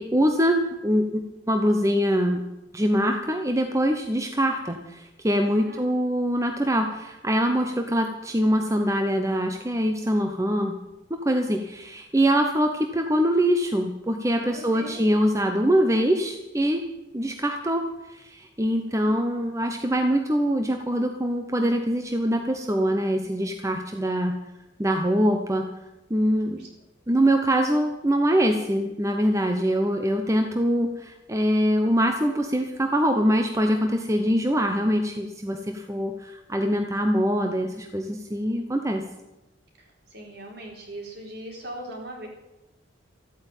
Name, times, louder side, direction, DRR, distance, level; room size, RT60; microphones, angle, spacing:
voice 1, 0.0-2.4 2.7-10.8 11.1-16.8 17.1-17.8 18.1-24.3 24.8-25.7 26.1-26.7 27.1-39.0, equal, 15° right, 5 dB, 0.9 m, -23 dB
voice 2, 5.7-6.1 14.5-15.1 19.0-19.2 26.6-26.7 40.1-42.3, right 1 dB, 55° right, 0 dB, 4.3 m, -40 dB
14.0 x 9.5 x 9.0 m, 0.98 s
head